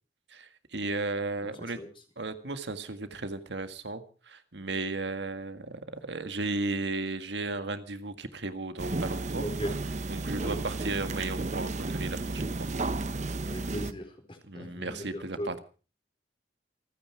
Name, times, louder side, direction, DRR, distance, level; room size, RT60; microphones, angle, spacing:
voice 1, 0.3-1.8 2.2-9.5 10.1-12.7 14.5-15.6, right 3 dB, 85° right, 9 dB, 1.8 m, -35 dB
voice 2, 1.4-1.9 9.4-9.7 10.4-10.6 13.5-15.6, equal, 30° left, 5 dB, 4.3 m, -38 dB
sound 1, 8.8-13.9, right 2 dB, 40° right, 0.8 m, -33 dB
28.0 x 9.7 x 4.6 m, 0.37 s
head